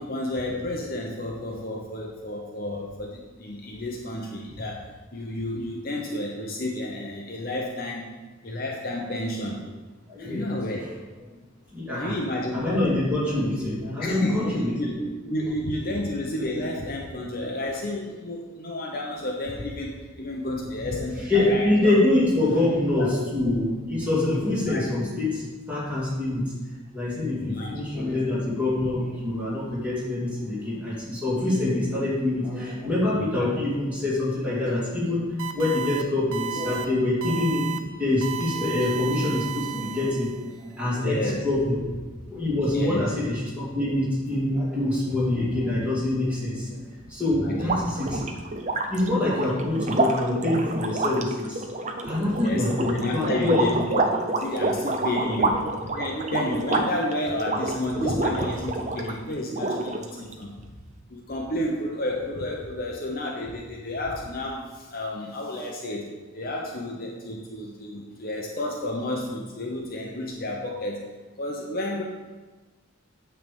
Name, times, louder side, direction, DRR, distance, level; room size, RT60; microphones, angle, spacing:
voice 1, 0.0-4.9 5.1-8.1 8.4-9.6 10.2-10.9 11.9-12.9 14.0-22.0 23.0-23.1 23.4-23.5 24.6-25.1 27.4-27.8 33.1-33.5 41.0-41.4 42.7-43.1 45.5-45.7 47.4-47.7 52.3-60.5 61.1-66.1 66.3-71.1 71.4-72.0, left 1 dB, 45° left, 0 dB, 0.8 m, -31 dB
voice 2, 10.1-10.4 11.7-12.2 12.5-14.9 21.3-25.4 25.7-26.4 26.9-35.3 35.5-37.7 38.0-41.8 42.3-48.2 48.8-51.6 52.0-53.6 55.1-55.3, left 2 dB, 5° right, -9 dB, 2.7 m, -25 dB
sound 1, 35.4-36.0 36.3-36.8 37.2-37.8 38.2-40.5, right 11 dB, 80° right, 0.6 m, -33 dB
sound 2, 47.5-59.2 59.5-60.3, right 2 dB, 35° right, 0.6 m, -28 dB
9.2 x 3.4 x 6.9 m, 1.3 s
head